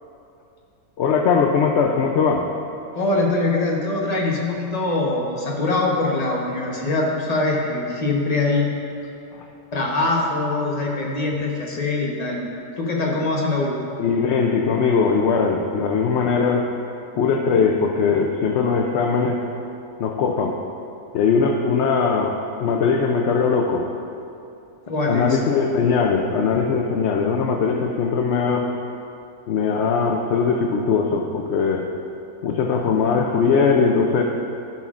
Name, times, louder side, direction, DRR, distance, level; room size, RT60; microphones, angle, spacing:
voice 1, 1.0-2.5 9.3-9.5 14.0-16.7 17.2-19.4 20.0-20.6 21.1-22.4 22.6-23.9 25.1-28.7 29.5-31.9 32.4-34.2, left 5 dB, 65° left, 1 dB, 0.7 m, -20 dB
voice 2, 2.9-8.7 9.7-12.4 12.8-13.8 24.9-25.4, left 2 dB, 30° left, -2 dB, 1.0 m, -23 dB
14.5 x 5.7 x 2.4 m, 2.7 s
omnidirectional pair, 1.6 m